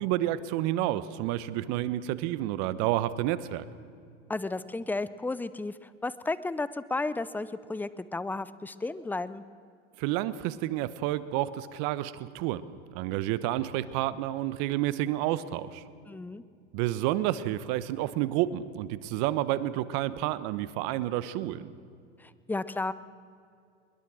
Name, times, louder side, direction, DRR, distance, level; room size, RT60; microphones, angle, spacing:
voice 1, 0.0-3.6 10.0-12.6 12.9-15.8 16.7-21.7, right 14 dB, 50° right, 16 dB, 1.2 m, -30 dB
voice 2, 4.3-9.4 16.1-16.4 22.2-22.9, left 2 dB, 5° left, 16 dB, 0.6 m, -33 dB
22.0 x 21.0 x 6.3 m, 2.3 s
hypercardioid pair, 110°, 36 cm